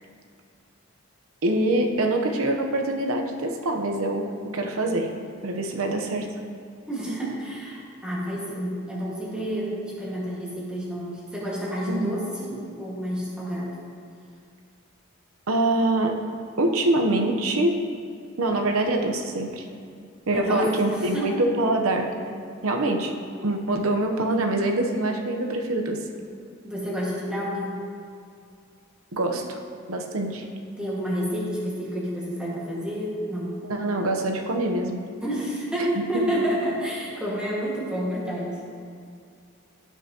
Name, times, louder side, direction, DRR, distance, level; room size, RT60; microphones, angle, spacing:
voice 1, 1.4-5.1 5.4-6.3 11.9-12.1 15.5-16.3 16.6-17.9 18.4-19.6 20.3-22.1 22.6-23.2 23.4-26.0 29.1-29.6 29.9-30.5 33.7-35.0, right 2 dB, 80° right, 3 dB, 0.9 m, -24 dB
voice 2, 6.9-13.8 20.3-21.4 26.6-27.8 30.8-33.6 35.2-38.7, equal, 5° right, -6 dB, 1.7 m, -29 dB
16.5 x 5.8 x 2.9 m, 2.3 s
head